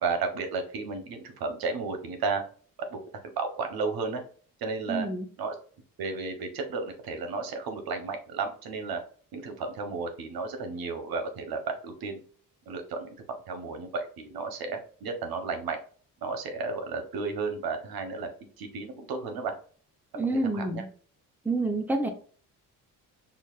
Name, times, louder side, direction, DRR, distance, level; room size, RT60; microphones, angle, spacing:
voice 1, 0.0-2.4 2.9-3.0 3.4-4.2 4.6-5.1 5.4-5.5 6.0-9.0 9.3-12.2 12.7-13.1 13.5-15.8 16.2-18.3 18.6-19.5 20.1-20.8, right 4 dB, 85° right, 6 dB, 1.0 m, -33 dB
voice 2, 4.9-5.3 20.2-20.8 21.4-22.1, right 2 dB, 5° right, 4 dB, 0.7 m, -28 dB
5.6 x 2.5 x 2.4 m, 0.44 s
cardioid pair, 125°, 36 cm